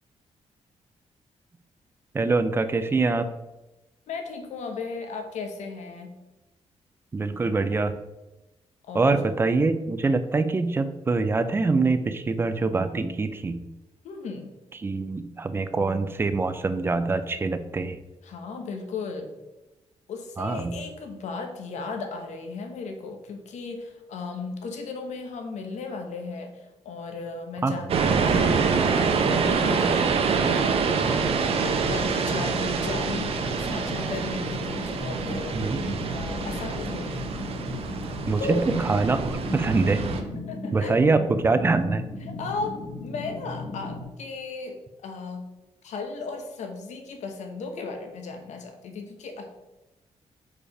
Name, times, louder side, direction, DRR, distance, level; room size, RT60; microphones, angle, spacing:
voice 1, 2.1-3.3 7.1-8.0 8.9-13.6 14.8-18.0 20.4-20.7 27.6-27.7 35.5-36.0 38.3-39.2 39.5-40.0 40.7-42.0, right 3 dB, 20° right, 11 dB, 0.4 m, -24 dB
voice 2, 4.1-6.1 8.9-9.2 14.0-14.5 18.2-19.3 20.1-30.9 31.6-35.6 36.1-37.3 38.4-38.7 40.5-41.0 42.3-45.5 45.8-49.5, left 4 dB, 80° left, 4 dB, 1.1 m, -35 dB
sound 1, 27.9-40.2, right 5 dB, 55° right, 0.7 m, -26 dB
sound 2, 31.0-44.0, left 2 dB, 35° left, 1.0 m, -36 dB
5.0 x 4.9 x 4.9 m, 1.0 s
wide cardioid pair, 175°, 12 cm